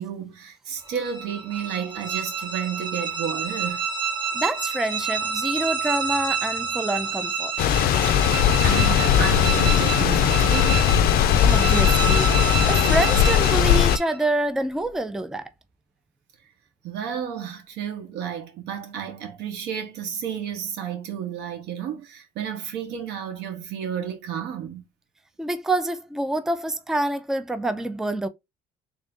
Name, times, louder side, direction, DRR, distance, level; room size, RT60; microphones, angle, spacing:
voice 1, 0.0-3.9 8.1-8.3 8.6-10.9 16.8-24.8, right 8 dB, 85° right, 1.2 m, -32 dB
sound 1, 0.9-14.2, right 6 dB, 30° right, 1.3 m, -29 dB
voice 2, 4.3-7.5 11.4-12.4 12.7-15.4 25.4-28.3, right 1 dB, 5° right, 0.4 m, -26 dB
sound 2, 7.6-14.0, left 9 dB, 65° left, 0.4 m, -19 dB
3.6 x 2.6 x 3.6 m
cardioid pair, 110°, 17 cm